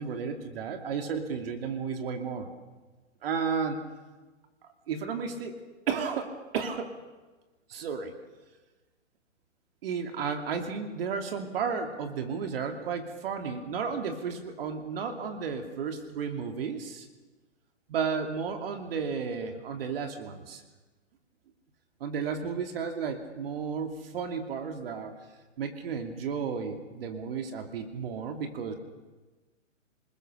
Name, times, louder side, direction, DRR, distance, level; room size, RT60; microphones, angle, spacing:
voice 1, 0.0-2.5 3.2-3.8 4.9-5.6 5.9-7.0 7.7-8.1 9.8-17.1 17.9-20.6 22.0-25.1 25.6-28.7, right 6 dB, 50° right, 5 dB, 2.8 m, -33 dB
26.0 x 21.0 x 6.8 m, 1.2 s
hypercardioid pair, 135°, 38 cm